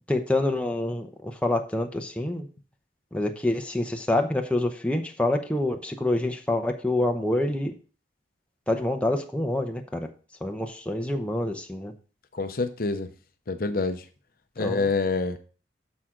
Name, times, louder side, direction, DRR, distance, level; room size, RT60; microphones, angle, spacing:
voice 1, 0.1-2.5 3.1-7.7 8.7-10.1 10.4-11.9 14.6-14.9, left 1 dB, 5° left, 3 dB, 0.8 m, -27 dB
voice 2, 12.3-13.1 13.5-14.0 14.6-15.4, left 3 dB, 50° left, 8 dB, 0.7 m, -26 dB
10.5 x 6.2 x 3.8 m, 0.38 s
head